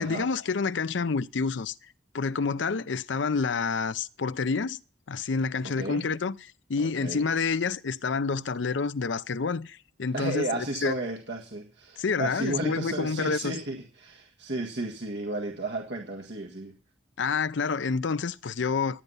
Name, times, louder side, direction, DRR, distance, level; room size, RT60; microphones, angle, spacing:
voice 1, 0.0-1.7 2.1-4.8 5.1-10.9 12.0-13.5 17.2-19.0, left 4 dB, 70° left, 0.6 m, -28 dB
voice 2, 5.6-6.0 6.8-7.3 10.1-16.7 17.2-17.3, right 2 dB, 65° right, 1.7 m, -33 dB
16.0 x 9.3 x 5.5 m
head